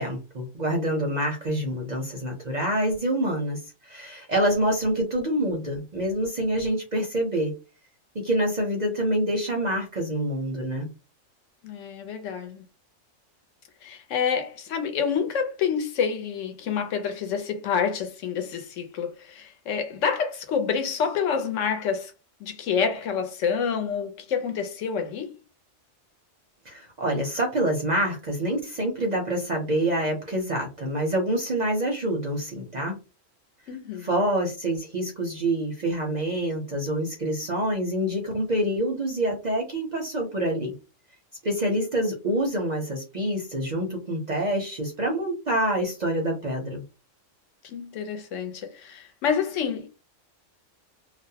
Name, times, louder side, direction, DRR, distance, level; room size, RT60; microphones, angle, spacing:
voice 1, 0.0-7.5 8.1-10.9 26.7-33.0 34.0-40.7 41.4-46.8, right 1 dB, 50° right, 0.5 m, -26 dB
voice 2, 11.6-12.6 13.8-22.1 22.4-25.3 33.7-34.1 47.6-49.9, left 6 dB, 75° left, 0.9 m, -28 dB
2.5 x 2.0 x 2.7 m
omnidirectional pair, 1.3 m